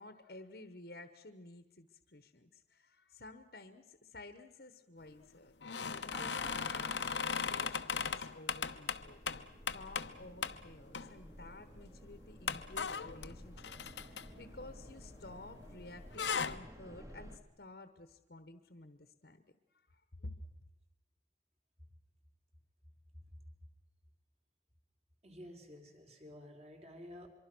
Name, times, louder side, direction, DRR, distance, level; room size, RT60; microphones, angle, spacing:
voice 1, 0.0-5.5 5.8-9.2 9.7-13.7 14.0-19.4 19.7-20.4, left 2 dB, 55° left, 10 dB, 1.2 m, -53 dB
sound 1, 5.6-10.1 10.4-10.6 10.9-11.4 11.8-11.9 12.5-15.5 15.8-16.6, left 6 dB, 75° left, 1.0 m, -38 dB
sound 2, 6.1-8.7, left 2 dB, 10° left, 1.5 m, -51 dB
sound 3, 9.0-17.4, equal, 15° right, 1.8 m, -54 dB
voice 2, 25.2-27.3, left 1 dB, 35° right, 4 dB, 3.6 m, -52 dB
25.0 x 23.5 x 6.2 m, 0.95 s
head